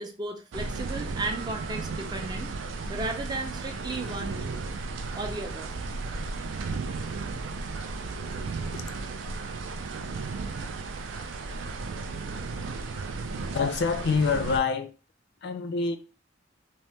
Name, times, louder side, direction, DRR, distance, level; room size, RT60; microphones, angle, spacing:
voice 1, 0.0-2.5 2.9-4.5 5.1-5.7, right 2 dB, 25° right, 0.4 m, -34 dB
sound 1, 0.5-14.6, right 3 dB, 90° right, 0.4 m, -34 dB
sound 2, 1.2-4.0, right 9 dB, 70° right, 0.9 m, -49 dB
voice 2, 13.5-14.9 15.4-16.0, left 5 dB, 60° left, 0.3 m, -26 dB
2.8 x 2.1 x 3.2 m
head